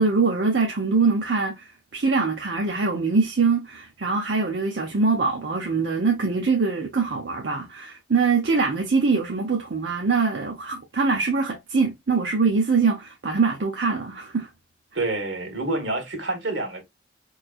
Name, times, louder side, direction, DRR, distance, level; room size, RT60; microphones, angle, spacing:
voice 1, 0.0-14.5, right 4 dB, 60° right, 0.7 m, -23 dB
voice 2, 14.9-16.8, right 2 dB, 80° right, 1.6 m, -27 dB
4.4 x 3.2 x 2.3 m
head